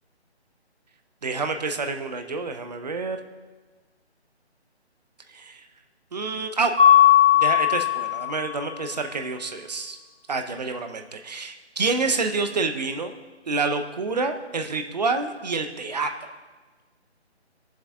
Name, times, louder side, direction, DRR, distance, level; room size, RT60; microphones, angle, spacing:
voice 1, 1.2-3.2 5.3-5.6 6.1-6.7 7.3-10.0 10.3-13.1 13.5-16.1, right 4 dB, 40° right, 6 dB, 0.8 m, -28 dB
Mallet percussion, 6.8-8.6, left 11 dB, 10° right, 0.8 m, -17 dB
21.0 x 7.5 x 3.6 m, 1.3 s
hypercardioid pair, 170°, 33 cm